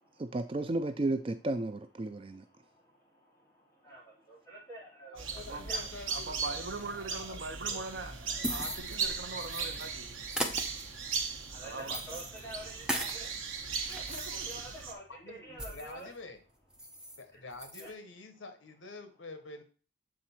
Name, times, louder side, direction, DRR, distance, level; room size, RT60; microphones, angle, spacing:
voice 1, 0.2-2.4, right 2 dB, 25° right, 0.3 m, -33 dB
voice 2, 2.0-5.9 8.6-8.8 9.9-16.1 16.8-17.4 17.8-17.9, right 1 dB, 15° left, 3.5 m, -50 dB
voice 3, 5.1-7.8 15.1-16.4 17.2-19.6, left 3 dB, 75° left, 1.0 m, -48 dB
sound 1, 5.2-14.9, right 5 dB, 80° right, 1.1 m, -38 dB
voice 4, 6.1-10.2 11.6-11.9 14.1-14.2, right 3 dB, 55° right, 0.8 m, -41 dB
sound 2, 8.4-9.9 10.3-13.3 13.7-16.0 16.4-16.5 16.7-17.2 17.5-17.9, equal, 5° right, 0.8 m, -39 dB
7.6 x 4.0 x 4.3 m
head